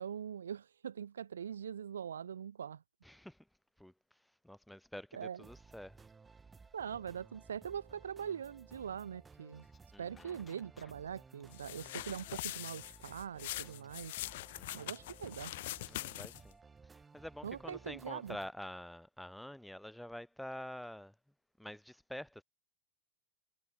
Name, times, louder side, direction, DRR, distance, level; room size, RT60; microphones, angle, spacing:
voice 1, 0.0-2.8 5.1-5.4 6.7-9.7 10.0-14.1 14.7-15.5 17.4-18.4, right 8 dB, 65° right, 0.3 m, -42 dB
voice 2, 3.0-3.4 3.8-3.9 4.4-6.0 9.9-10.4 14.6-14.9 15.9-21.1 21.6-22.4, left 1 dB, ahead, 1.1 m, -47 dB
sound 1, 5.4-18.5, right 4 dB, 15° right, 1.5 m, -58 dB
sound 2, 9.5-14.2, left 5 dB, 15° left, 2.1 m, -65 dB
sound 3, 11.5-16.5, left 17 dB, 55° left, 0.6 m, -43 dB
figure-of-eight pair, 90°, 0 cm